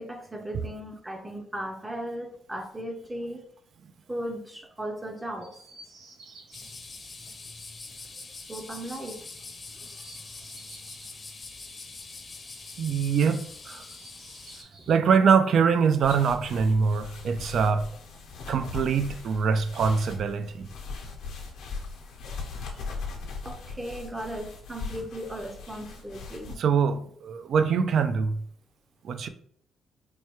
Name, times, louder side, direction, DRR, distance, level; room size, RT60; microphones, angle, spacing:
voice 1, 0.0-3.5 4.1-5.6 8.5-9.2 23.4-26.5, right 1 dB, 10° right, 0.6 m, -36 dB
Chirp tweet, 5.4-6.7 9.7-11.2 13.5-15.0 16.4-17.5 18.6-19.5, right 2 dB, 85° right, 0.9 m, -53 dB
sound 1, 6.5-14.6, left 3 dB, 35° left, 0.6 m, -43 dB
voice 2, 12.8-13.8 14.9-17.9 18.5-20.7 26.6-28.4 29.0-29.3, right 6 dB, 60° right, 0.3 m, -24 dB
sound 2, 16.0-26.5, left 4 dB, 85° left, 0.8 m, -39 dB
4.4 x 2.3 x 3.0 m
cardioid pair, 90°, 0 cm